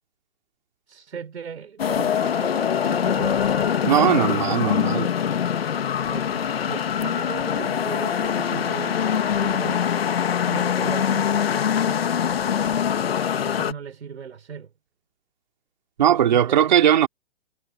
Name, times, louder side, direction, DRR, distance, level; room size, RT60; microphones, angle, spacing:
voice 1, 0.9-3.6 6.1-9.8 10.4-12.3 13.1-14.7 16.0-16.8, right 7 dB, 70° right, 4.8 m, -37 dB
sound 1, 1.8-13.7, left 8 dB, 55° left, 2.1 m, -23 dB
voice 2, 3.8-5.1 16.0-17.1, right 10 dB, 40° right, 3.1 m, -19 dB
hypercardioid pair, 175°, 35 cm